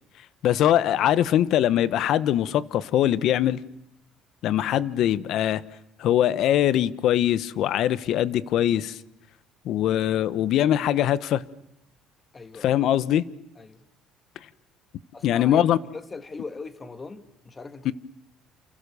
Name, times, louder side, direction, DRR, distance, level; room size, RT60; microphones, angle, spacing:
voice 1, 0.4-3.6 4.4-5.6 6.0-9.0 9.6-11.4 12.6-13.2 15.2-15.8 17.8-17.9, left 11 dB, 60° left, 1.1 m, -22 dB
voice 2, 12.3-12.7 13.6-13.9 15.1-17.9, left 4 dB, 20° left, 1.8 m, -40 dB
28.5 x 28.5 x 7.0 m
cardioid pair, 130°, 0 cm